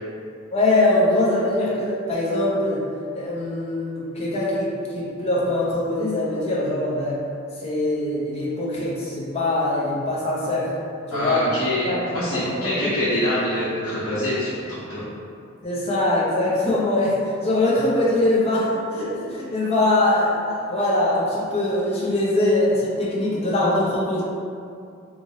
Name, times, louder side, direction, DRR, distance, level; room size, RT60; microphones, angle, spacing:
voice 1, 0.5-2.8 3.1-7.2 7.6-10.7 11.1-11.4 11.8-13.1 15.6-24.2, left 1 dB, 30° left, -7 dB, 0.6 m, -22 dB
voice 2, 11.1-15.0, left 1 dB, 85° left, -13 dB, 0.8 m, -25 dB
2.9 x 2.5 x 2.7 m, 2.4 s
head